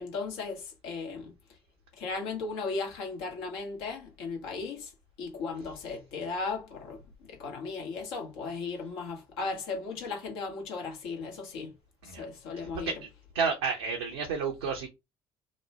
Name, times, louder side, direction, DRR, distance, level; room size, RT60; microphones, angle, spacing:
voice 1, 0.0-1.3 2.0-4.9 5.2-11.7 12.0-12.9, left 4 dB, 75° left, 1.0 m, -36 dB
voice 2, 12.6-13.0 13.3-14.9, right 5 dB, 80° right, 0.6 m, -31 dB
3.0 x 2.1 x 4.0 m
hypercardioid pair, 55°, 13 cm